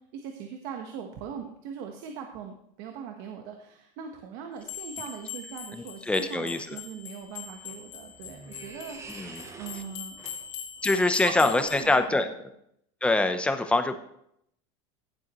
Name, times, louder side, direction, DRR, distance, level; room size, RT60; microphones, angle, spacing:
voice 1, 0.1-9.0 9.6-10.2 10.9-12.3, right 7 dB, 60° right, 3 dB, 1.2 m, -40 dB
sound 1, 4.6-11.9, left 9 dB, 75° left, 2.7 m, -41 dB
voice 2, 5.7-6.8 9.1-9.4 10.8-12.3 13.0-14.0, left 2 dB, 10° left, 8 dB, 0.8 m, -25 dB
sound 2, 7.2-12.2, right 4 dB, 20° right, 0.9 m, -48 dB
15.5 x 7.6 x 3.1 m, 0.74 s
supercardioid pair, 135°, 15 cm